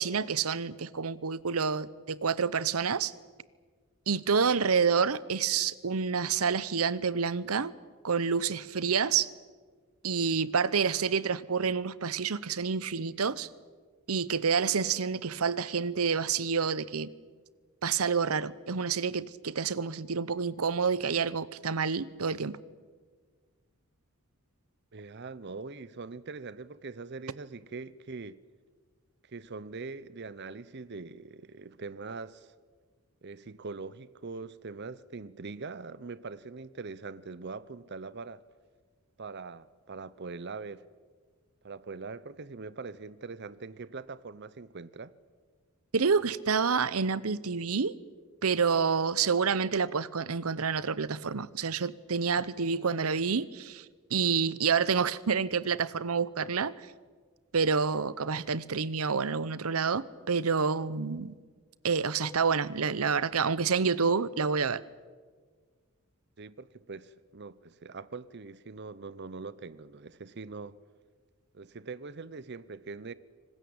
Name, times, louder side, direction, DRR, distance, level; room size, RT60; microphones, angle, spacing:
voice 1, 0.0-3.1 4.1-7.7 8.0-9.3 10.0-13.5 14.1-17.1 17.8-22.6 45.9-47.9 48.4-53.8 54.1-56.7 57.5-61.3 61.8-64.8, right 5 dB, 85° right, 0.8 m, -28 dB
voice 2, 24.9-28.4 29.2-32.5 33.2-38.4 39.2-40.8 41.6-45.1 66.4-70.8 71.5-73.1, right 4 dB, 50° right, 0.7 m, -42 dB
25.5 x 19.5 x 8.7 m
head